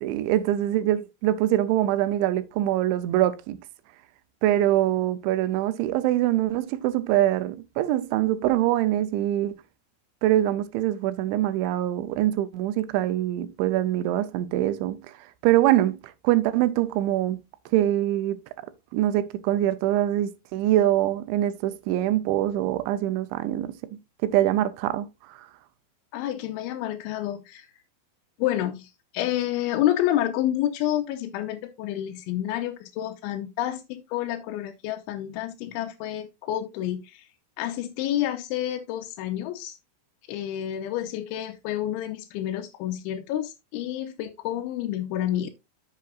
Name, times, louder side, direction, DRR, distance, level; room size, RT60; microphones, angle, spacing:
voice 1, 0.0-3.6 4.4-9.6 10.2-15.0 15.4-17.4 17.7-18.4 18.9-23.7 24.2-25.4, right 13 dB, 85° right, 3.1 m, -24 dB
voice 2, 26.1-27.7 28.4-37.3 37.6-39.8 40.3-45.5, left 12 dB, 85° left, 3.2 m, -29 dB
11.5 x 6.9 x 2.4 m
omnidirectional pair, 5.3 m